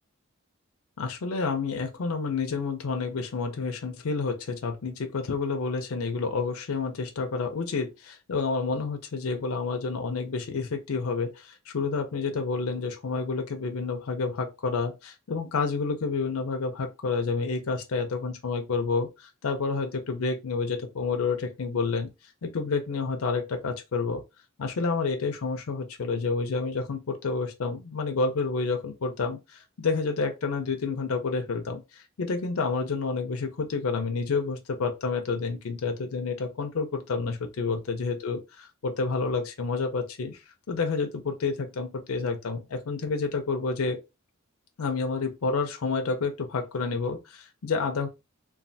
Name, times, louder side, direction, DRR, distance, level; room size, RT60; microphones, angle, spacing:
voice 1, 1.0-22.1 22.4-24.2 24.6-40.4 40.7-44.0 44.8-48.1, left 4 dB, 85° left, 0.5 m, -29 dB
3.2 x 2.3 x 2.6 m
head